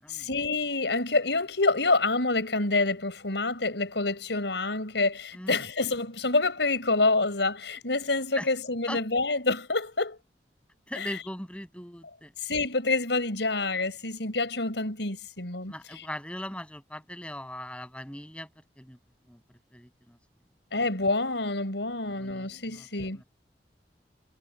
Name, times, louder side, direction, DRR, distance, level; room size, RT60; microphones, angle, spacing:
voice 1, 0.1-10.2 12.4-15.7 20.7-23.2, left 3 dB, 85° left, 5.0 m, -27 dB
voice 2, 10.9-12.3 15.7-18.5 18.8-19.0 19.3-19.4 19.7-20.2 22.0-23.2, left 1 dB, 5° left, 7.5 m, -40 dB
head